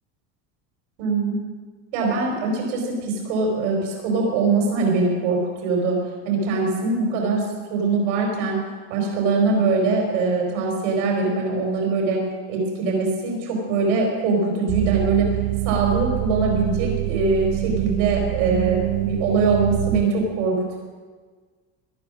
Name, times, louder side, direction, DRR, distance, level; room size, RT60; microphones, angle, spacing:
voice 1, 1.0-1.4 1.9-6.0 6.2-8.6 8.9-12.2 12.5-15.3 15.6-20.8, right 3 dB, 80° right, 0 dB, 4.7 m, -22 dB
sound 1, 14.7-20.0, right 16 dB, 60° right, 0.7 m, -25 dB
18.0 x 10.5 x 6.2 m, 1.5 s
supercardioid pair, 115°, 36 cm